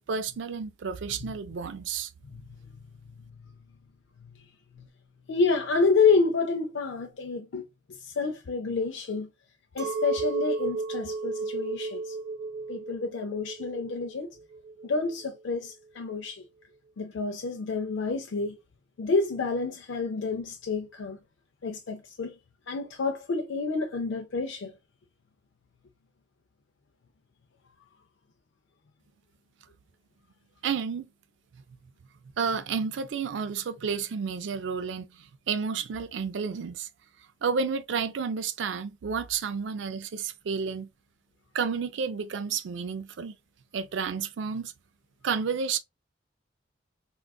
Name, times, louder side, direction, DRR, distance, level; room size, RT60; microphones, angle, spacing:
voice 1, 0.0-2.1 30.6-31.1 32.4-35.1 35.5-36.9 37.4-40.9 41.5-43.4 43.7-44.7 45.2-45.8, right 6 dB, 70° right, 0.4 m, -31 dB
voice 2, 5.3-7.7 8.0-9.3 9.7-12.1 12.7-14.3 14.8-16.4 17.0-18.6 19.0-21.2 21.6-22.3 22.7-24.7, left 4 dB, 75° left, 0.4 m, -28 dB
Chink clink, 9.8-15.2, right 3 dB, 55° right, 0.8 m, -33 dB
3.7 x 2.3 x 2.2 m
head